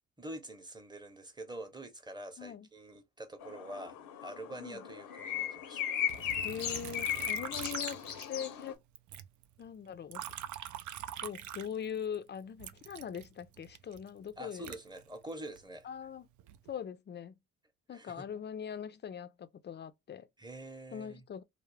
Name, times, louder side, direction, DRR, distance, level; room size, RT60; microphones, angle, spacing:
voice 1, 0.2-5.9 14.4-15.9 17.9-18.3 20.4-21.2, right 1 dB, 15° right, 0.8 m, -46 dB
voice 2, 2.4-2.7 4.6-4.8 6.4-8.0 8.3-8.8 9.6-10.2 11.2-14.7 15.8-16.3 16.7-17.3 17.9-20.3 20.9-21.4, left 8 dB, 35° left, 0.5 m, -41 dB
sound 1, 3.4-8.7, left 9 dB, 80° left, 0.7 m, -37 dB
Liquid, 6.1-8.7 8.9-12.1 12.6-15.6 16.2-16.7, right 11 dB, 65° right, 0.5 m, -44 dB
2.4 x 2.0 x 3.1 m
supercardioid pair, 70°, 33 cm